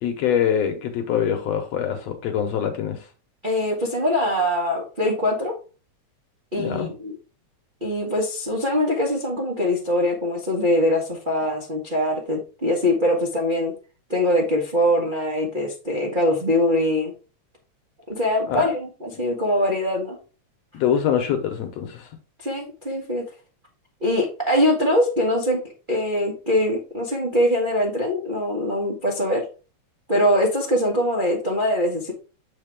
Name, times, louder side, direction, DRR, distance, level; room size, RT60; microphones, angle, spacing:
voice 1, 0.0-3.0 6.6-6.9 18.5-18.7 20.7-22.1, left 8 dB, 70° left, 1.9 m, -24 dB
voice 2, 3.4-5.5 6.5-7.1 7.8-13.7 14.1-17.1 18.1-20.2 22.4-23.3 24.0-25.6 25.9-29.5 30.1-32.1, left 1 dB, 40° right, 0.7 m, -22 dB
7.4 x 4.4 x 3.5 m
omnidirectional pair, 3.4 m